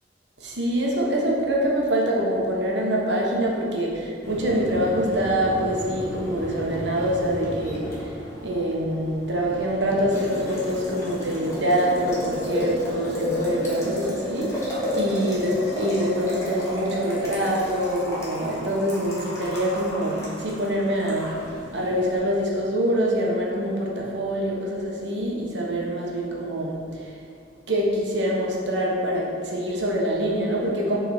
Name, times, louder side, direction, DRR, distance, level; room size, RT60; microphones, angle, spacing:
voice 1, 0.4-8.1 8.4-21.3 21.7-27.2 27.7-31.0, equal, 90° right, -3 dB, 1.2 m, -25 dB
Boiling, 4.2-22.2, left 1 dB, 15° left, 1.5 m, -32 dB
6.6 x 3.8 x 4.8 m, 2.3 s
head